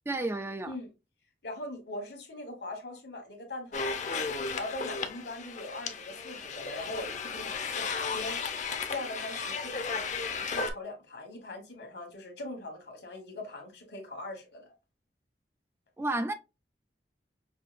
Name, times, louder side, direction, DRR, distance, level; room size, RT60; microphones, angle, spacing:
voice 1, 0.1-0.7 16.0-16.3, right 2 dB, 15° right, 0.3 m, -31 dB
voice 2, 1.4-8.6 8.9-14.7, left 1 dB, 70° left, 1.3 m, -41 dB
sound 1, 3.7-10.7, left 5 dB, 45° left, 0.6 m, -34 dB
5.7 x 2.7 x 2.4 m
head